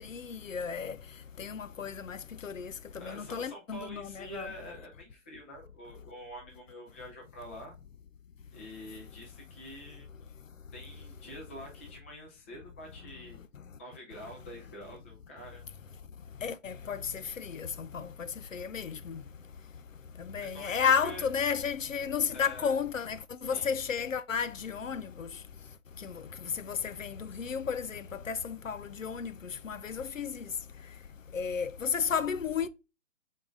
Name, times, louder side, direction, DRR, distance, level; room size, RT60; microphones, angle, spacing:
voice 1, 0.1-1.0 1.4-2.2 2.4-4.5 16.4-19.2 20.3-25.3 26.0-26.2 26.6-29.3 29.6-30.4 31.3-32.7, left 6 dB, 90° left, 0.5 m, -33 dB
voice 2, 3.0-7.7 8.5-10.1 10.7-13.4 13.8-15.6 20.4-21.3 22.3-22.7 23.5-23.7, equal, 10° left, 0.5 m, -46 dB
3.8 x 3.6 x 3.6 m
figure-of-eight pair, 135°, 38 cm